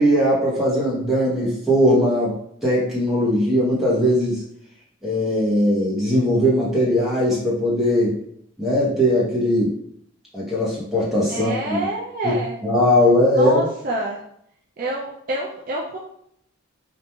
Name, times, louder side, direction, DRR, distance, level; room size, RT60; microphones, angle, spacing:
voice 1, 0.0-2.3 2.6-4.4 5.0-8.2 8.6-9.7 10.3-11.8 12.2-12.3 12.6-13.7, equal, ahead, -8 dB, 0.8 m, -19 dB
voice 2, 11.3-12.6 13.3-14.2 14.8-16.0, right 1 dB, 40° right, -3 dB, 0.3 m, -27 dB
2.9 x 2.4 x 2.3 m, 0.70 s
head